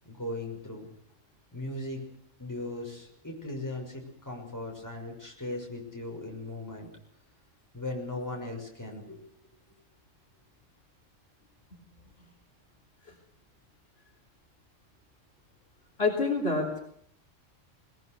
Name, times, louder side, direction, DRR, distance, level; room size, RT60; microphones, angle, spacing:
voice 1, 0.1-0.9 1.5-2.0 2.4-6.9 7.7-9.2, left 2 dB, 15° left, 0 dB, 6.2 m, -38 dB
voice 2, 16.0-16.8, left 3 dB, 50° left, -1 dB, 4.0 m, -27 dB
21.0 x 21.0 x 8.1 m, 0.67 s
omnidirectional pair, 1.3 m